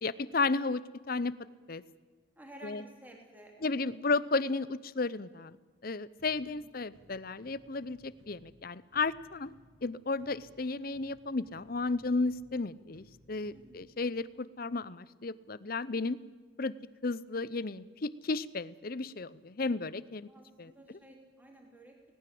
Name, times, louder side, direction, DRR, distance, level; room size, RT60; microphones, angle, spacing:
voice 1, 0.0-1.3 1.7-1.8 2.6-2.8 3.6-5.6 5.8-9.5 9.8-16.2 16.6-16.7 17.0-20.3 20.6-20.7, left 3 dB, 45° left, 18 dB, 0.7 m, -33 dB
voice 2, 2.4-3.8 6.4-6.5 13.5-13.8 20.2-22.2, right 1 dB, 10° right, 1 dB, 3.5 m, -53 dB
sound 1, 6.2-14.2, equal, 85° right, 3.7 m, -63 dB
20.0 x 18.5 x 7.8 m, 1.4 s
head